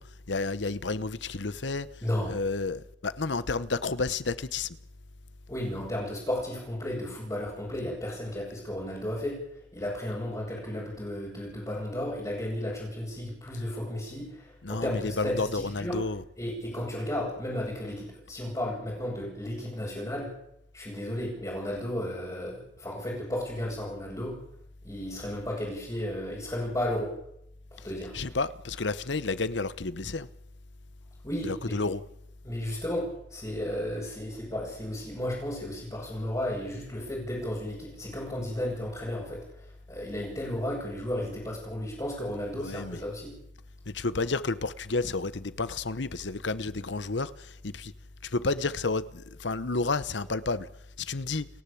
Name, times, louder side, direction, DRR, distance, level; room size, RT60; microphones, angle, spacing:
voice 1, 0.0-1.9 2.3-4.8 14.6-16.2 27.8-27.9 28.1-30.3 31.4-32.0 42.6-43.0 43.9-47.9 48.2-50.7 51.0-51.5, left 3 dB, 75° left, 1.0 m, -31 dB
voice 2, 2.0-2.4 5.5-9.4 9.7-16.0 16.4-20.3 20.7-24.4 24.8-27.1 27.7-28.1 31.2-31.8 32.4-39.5 39.9-43.3, left 1 dB, 20° left, 6.8 m, -33 dB
29.5 x 10.5 x 8.5 m
head